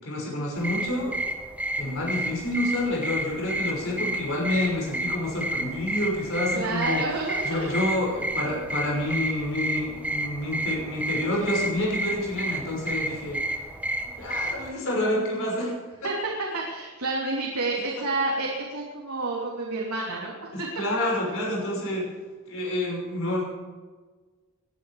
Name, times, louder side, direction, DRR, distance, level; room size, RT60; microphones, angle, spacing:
voice 1, 0.0-1.2 1.8-7.0 7.4-13.4 14.2-15.7 20.5-22.1 22.5-23.4, left 1 dB, 65° left, -2 dB, 5.9 m, -28 dB
sound 1, 0.6-14.7, right 1 dB, 5° right, 1.3 m, -31 dB
voice 2, 6.5-7.7 16.0-20.7, right 2 dB, 90° right, -3 dB, 3.2 m, -29 dB
20.5 x 11.5 x 4.9 m, 1.4 s
head